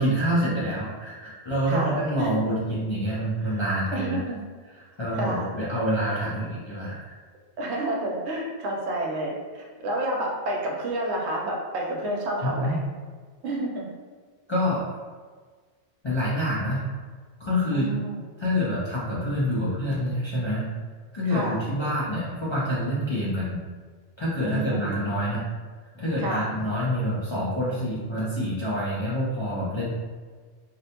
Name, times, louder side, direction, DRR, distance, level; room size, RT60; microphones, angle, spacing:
voice 1, 0.0-4.2 4.8-7.1 12.4-12.8 14.5-14.8 16.0-16.8 17.4-17.9 18.4-20.7 21.1-23.6 24.2-25.4 25.9-29.9, equal, 50° left, -9 dB, 0.3 m, -27 dB
voice 2, 1.7-2.6 3.4-3.6 3.9-4.5 5.2-5.5 6.3-6.4 7.6-12.8 13.4-13.9 17.7-18.2 21.3-21.6 24.4-25.0 26.2-26.5, right 1 dB, 80° right, -1 dB, 0.9 m, -30 dB
2.4 x 2.1 x 2.8 m, 1.5 s
omnidirectional pair, 1.1 m